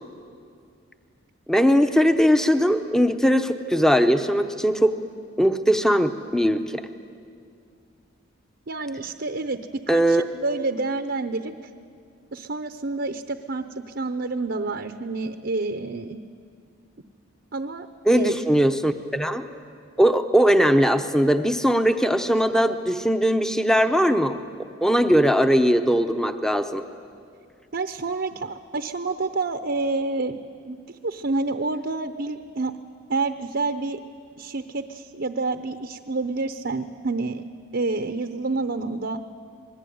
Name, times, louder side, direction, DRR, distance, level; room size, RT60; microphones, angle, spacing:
voice 1, 1.5-5.0 5.4-6.8 9.9-10.2 18.1-19.4 20.0-24.4 24.8-26.8, equal, 5° left, 8 dB, 0.8 m, -20 dB
voice 2, 8.7-11.5 12.3-16.2 17.5-17.9 18.1-18.5 27.7-30.4 30.6-30.8 31.0-32.8 33.1-34.0 34.4-37.4 37.7-39.2, right 3 dB, 55° right, 8 dB, 0.8 m, -28 dB
26.5 x 21.0 x 9.4 m, 2.3 s
head